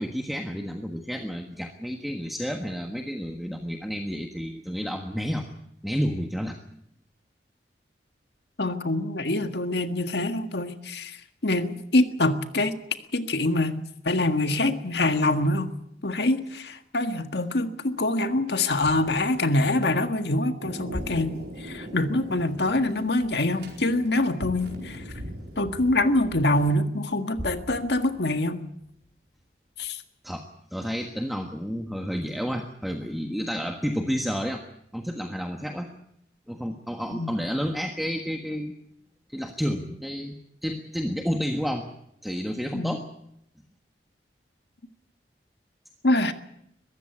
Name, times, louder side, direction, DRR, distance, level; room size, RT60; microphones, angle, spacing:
voice 1, 0.0-5.4 5.8-6.6 30.2-30.4 30.7-34.6 34.9-35.9 36.5-38.7 39.3-41.9 42.2-43.1, equal, ahead, 3 dB, 1.4 m, -30 dB
voice 2, 8.6-11.2 11.4-12.8 13.1-13.8 14.0-15.7 16.0-25.0 25.6-28.6 29.8-30.0 37.1-37.3 42.7-43.0 46.0-46.3, left 2 dB, 75° left, 8 dB, 1.7 m, -25 dB
sound 1, 18.8-23.8 24.3-26.7 27.3-29.4 29.8-29.9, equal, 30° left, 2.5 m, -43 dB
Thunder, 20.6-26.7, right 1 dB, 70° right, 4.8 m, -41 dB
22.0 x 15.0 x 9.9 m, 0.76 s
head